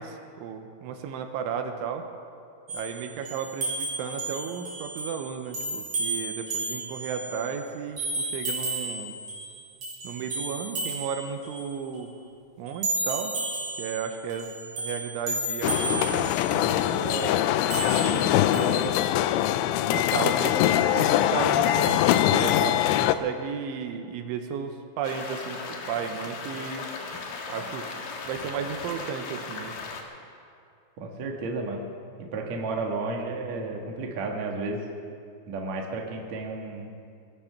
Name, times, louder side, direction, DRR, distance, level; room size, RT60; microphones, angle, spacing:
voice 1, 0.0-2.0 2.7-9.2 10.0-12.1 12.6-13.3 13.8-17.4 18.0-18.9 19.9-26.8 27.5-27.9 28.2-29.8, right 7 dB, 80° right, 5 dB, 3.2 m, -34 dB
sound 1, 2.7-7.5 8.0-9.6 9.8-11.8 12.7-17.1 17.7-18.9, right 2 dB, 45° right, 6.4 m, -33 dB
sound 2, 15.6-23.2, left 12 dB, 85° left, 2.9 m, -23 dB
sound 3, 25.0-30.0, left 4 dB, 65° left, 2.5 m, -37 dB
voice 2, 31.0-31.9 32.2-34.8 35.5-36.9, right 3 dB, 60° right, 0 dB, 1.8 m, -32 dB
21.0 x 10.5 x 5.8 m, 2.4 s
omnidirectional pair, 5.7 m